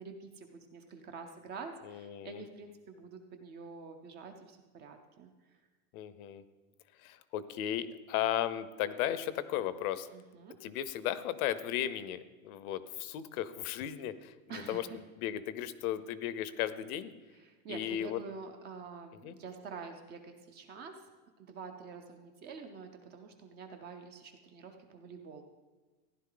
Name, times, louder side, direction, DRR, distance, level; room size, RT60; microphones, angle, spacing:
voice 1, 0.0-5.3 10.1-10.6 14.5-15.0 17.3-20.9 21.5-25.4, right 5 dB, 25° right, 5 dB, 0.5 m, -47 dB
voice 2, 1.8-2.4 5.9-6.4 7.0-10.1 10.6-14.9 15.2-17.1 17.7-18.2 19.2-19.3, left 11 dB, 65° left, 14 dB, 0.8 m, -35 dB
15.0 x 10.5 x 3.8 m, 1.3 s
supercardioid pair, 170°, 46 cm